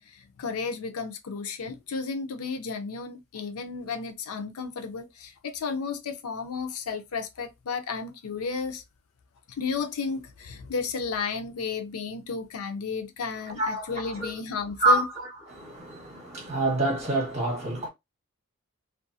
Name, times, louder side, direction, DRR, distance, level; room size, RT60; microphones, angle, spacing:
voice 1, 0.1-8.8 9.6-15.1, left 5 dB, 90° left, 0.5 m, -33 dB
voice 2, 13.6-14.3 14.8-17.9, right 2 dB, 30° right, 1.3 m, -27 dB
2.5 x 2.3 x 2.5 m
head